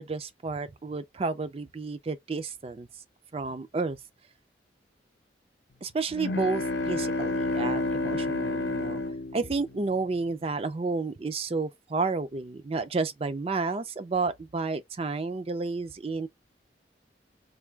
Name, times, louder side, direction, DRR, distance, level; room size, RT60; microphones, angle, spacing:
voice 1, 0.0-2.9 3.3-4.0 5.8-9.0 9.3-16.3, right 3 dB, 30° right, 0.4 m, -31 dB
sound 1, 6.1-10.1, left 2 dB, 80° left, 0.7 m, -30 dB
3.4 x 2.3 x 3.2 m
head